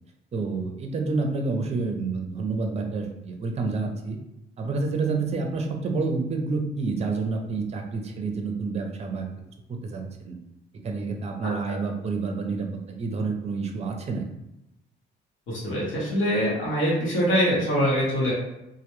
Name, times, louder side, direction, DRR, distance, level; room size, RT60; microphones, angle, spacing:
voice 1, 0.3-4.2 4.6-9.3 9.7-10.4 10.8-12.7 13.0-14.2, right 4 dB, 35° right, 3 dB, 0.5 m, -28 dB
voice 2, 15.5-18.3, equal, 85° left, -6 dB, 0.9 m, -24 dB
2.1 x 2.0 x 3.0 m, 0.89 s
cardioid pair, 90°, 20 cm